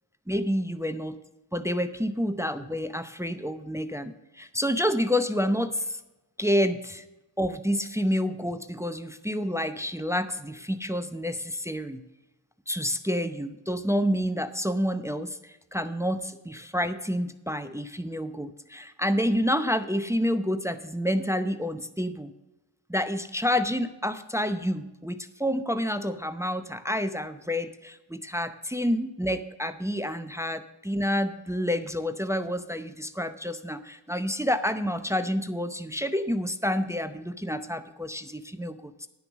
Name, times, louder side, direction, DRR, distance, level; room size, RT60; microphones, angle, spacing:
voice 1, 0.3-1.2 1.5-6.0 6.4-7.0 7.4-12.0 12.7-22.3 22.9-39.1, equal, 5° right, 10 dB, 0.7 m, -29 dB
10.5 x 6.6 x 6.2 m, 0.99 s
cardioid pair, 50°, 46 cm